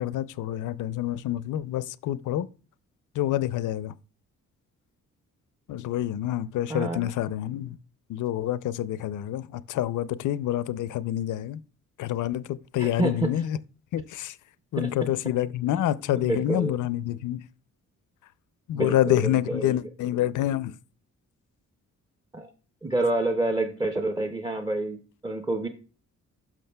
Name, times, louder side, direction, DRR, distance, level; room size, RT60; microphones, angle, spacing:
voice 1, 0.0-2.5 3.2-3.9 5.7-7.8 8.1-11.6 12.0-13.6 13.9-14.4 14.7-17.4 18.7-20.7, left 12 dB, 75° left, 0.5 m, -27 dB
voice 2, 6.7-7.1 12.8-13.4 14.8-15.1 16.1-16.8 18.7-19.8 22.3-22.5 22.8-25.7, right 2 dB, 15° right, 0.5 m, -28 dB
12.0 x 6.1 x 2.2 m
wide cardioid pair, 140°, 31 cm